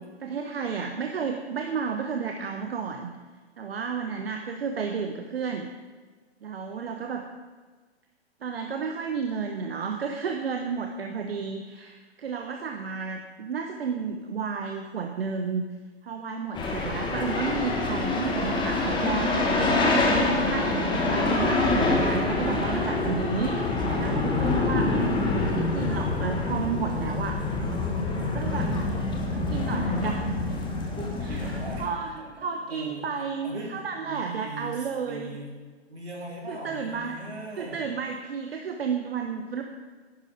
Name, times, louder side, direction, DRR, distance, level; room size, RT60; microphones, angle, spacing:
voice 1, 0.0-3.1 3.6-5.7 6.4-7.2 8.4-15.6 16.0-19.8 20.2-25.1 25.4-27.4 28.2-28.7 29.3-30.3 31.2-35.4 36.5-37.2 37.6-39.6, right 5 dB, 60° right, 4 dB, 1.1 m, -32 dB
sound 1, 16.5-31.9, left 2 dB, 15° left, 1.5 m, -26 dB
voice 2, 30.9-35.5 35.9-37.8, right 1 dB, 75° right, -2 dB, 3.7 m, -40 dB
11.0 x 10.5 x 5.1 m, 1.4 s
figure-of-eight pair, 120°, 33 cm